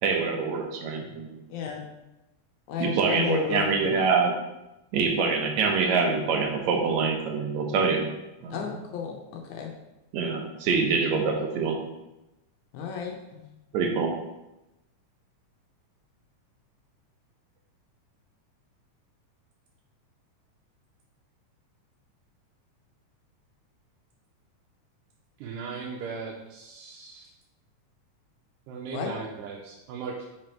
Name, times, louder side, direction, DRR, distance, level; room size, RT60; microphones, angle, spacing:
voice 1, 0.0-1.4 2.8-4.3 4.9-8.0 8.4-8.6 10.1-11.8 13.7-14.1, right 5 dB, 70° right, 1 dB, 1.9 m, -25 dB
voice 2, 1.5-1.8 2.7-4.0 8.5-9.7 12.7-13.5 28.9-29.2, left 6 dB, 75° left, 1 dB, 2.0 m, -32 dB
voice 3, 25.4-27.3 28.7-30.3, right 5 dB, 90° right, -1 dB, 2.2 m, -37 dB
5.1 x 4.2 x 4.4 m, 0.97 s
omnidirectional pair, 3.7 m